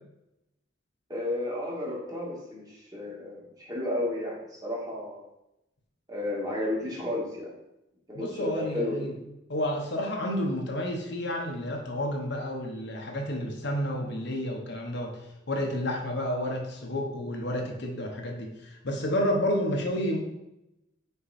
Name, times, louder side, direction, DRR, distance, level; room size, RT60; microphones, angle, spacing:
voice 1, 1.1-5.2 6.1-7.5 8.1-8.9, left 1 dB, 20° right, -4 dB, 1.7 m, -32 dB
voice 2, 8.1-9.1 9.5-20.2, left 1 dB, 60° left, 1 dB, 1.0 m, -30 dB
5.7 x 4.5 x 4.2 m, 0.88 s
head